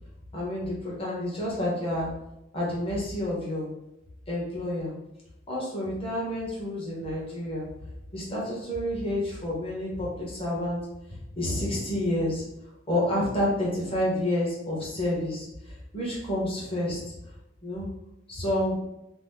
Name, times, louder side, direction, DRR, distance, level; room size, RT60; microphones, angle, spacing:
voice 1, 0.3-2.1 2.5-3.7 4.3-4.9 5.5-7.7 8.1-10.8 11.1-12.4 12.9-15.5 15.9-17.0 17.6-17.9 18.3-18.8, left 1 dB, 30° left, -5 dB, 0.9 m, -29 dB
2.9 x 2.0 x 3.4 m, 0.89 s
head